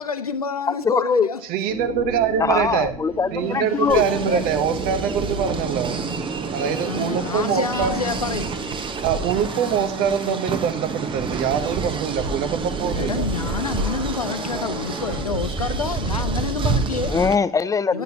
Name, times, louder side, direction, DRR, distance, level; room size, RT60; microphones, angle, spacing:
voice 1, 0.0-1.4 4.2-4.4 6.9-8.5 13.0-17.2 17.9-18.0, left 5 dB, 85° left, 0.5 m, -28 dB
voice 2, 0.7-1.3 2.4-4.0 17.1-18.0, left 5 dB, 20° left, 0.4 m, -21 dB
voice 3, 1.4-2.9 3.3-6.0 6.5-7.9 9.0-13.3, right 8 dB, 55° right, 0.9 m, -24 dB
sound 1, 1.7-15.2, right 1 dB, 80° right, 2.9 m, -36 dB
sound 2, 3.9-17.4, right 4 dB, 25° right, 0.9 m, -28 dB
10.0 x 9.2 x 2.8 m
figure-of-eight pair, 60°, 18 cm